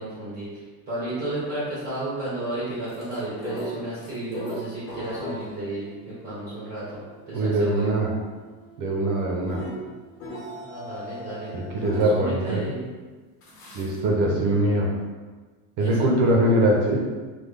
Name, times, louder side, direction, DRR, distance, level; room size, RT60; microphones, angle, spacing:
voice 1, 0.0-7.9 10.6-11.6 11.8-12.8 15.8-16.1, right 2 dB, 20° right, -11 dB, 1.0 m, -33 dB
sound 1, 2.9-12.2 13.4-14.0, equal, 90° left, 1.1 m, -39 dB
voice 2, 7.3-8.1 8.8-9.6 11.5-12.6 13.7-14.9 15.8-17.0, right 1 dB, 45° right, -1 dB, 0.6 m, -22 dB
3.3 x 2.1 x 3.4 m, 1.4 s
cardioid pair, 145°, 46 cm